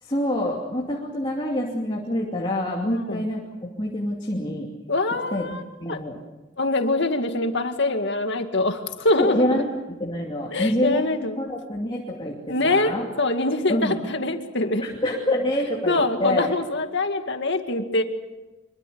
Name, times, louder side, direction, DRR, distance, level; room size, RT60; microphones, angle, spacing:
voice 1, 0.0-4.7 5.3-6.2 9.1-9.7 10.0-11.1 11.4-13.1 13.7-14.0 14.8-16.5, left 1 dB, 25° left, -2 dB, 2.7 m, -26 dB
voice 2, 2.8-3.3 4.9-5.6 5.9-6.0 6.6-9.6 10.5-11.4 12.5-14.8 15.9-18.0, left 2 dB, 60° left, 6 dB, 2.2 m, -24 dB
25.5 x 23.5 x 7.0 m, 1.1 s
head